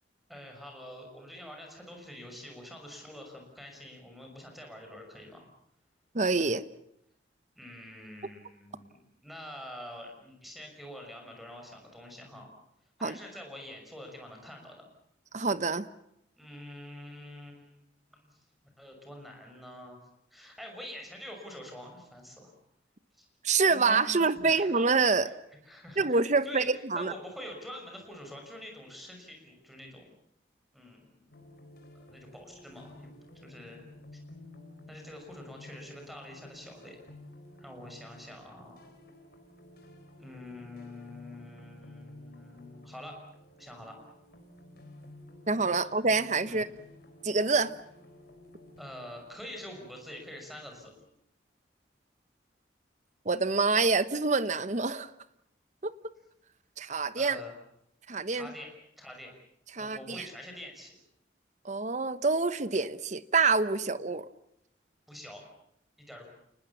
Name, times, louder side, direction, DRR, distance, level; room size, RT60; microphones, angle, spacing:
voice 1, 0.3-5.5 7.5-12.5 13.0-14.8 16.3-17.8 18.2-18.4 18.8-20.0 20.3-22.5 23.1-23.2 23.7-24.2 24.4-24.8 25.2-25.3 25.6-26.7 26.9-30.1 30.7-31.4 32.1-33.1 33.4-33.8 34.9-37.0 37.6-38.8 40.2-43.1 43.6-44.0 46.4-46.7 48.8-50.9 57.2-57.5 58.3-58.7 59.0-59.3 59.8-61.0 65.1-65.4 66.0-66.3, left 1 dB, ahead, 2 dB, 6.1 m, -46 dB
voice 2, 6.1-6.6 13.0-13.1 15.3-15.8 23.4-25.3 26.0-27.1 45.5-46.7 47.2-47.7 53.2-55.1 55.8-55.9 56.8-57.4 58.1-58.5 59.7-60.2 61.6-64.2, right 4 dB, 40° right, 14 dB, 1.0 m, -26 dB
sound 1, 31.3-51.0, left 1 dB, 55° left, 4.3 m, -53 dB
29.5 x 20.0 x 7.2 m, 0.76 s
head